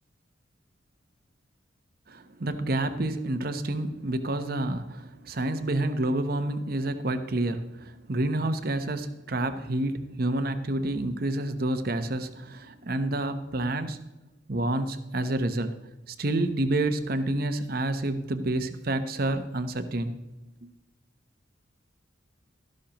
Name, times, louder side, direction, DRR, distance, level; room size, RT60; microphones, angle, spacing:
voice 1, 2.1-14.0 14.5-15.7 16.1-20.2 20.6-20.7, right 1 dB, 50° right, 9 dB, 0.8 m, -29 dB
13.0 x 11.5 x 2.9 m, 1.0 s
head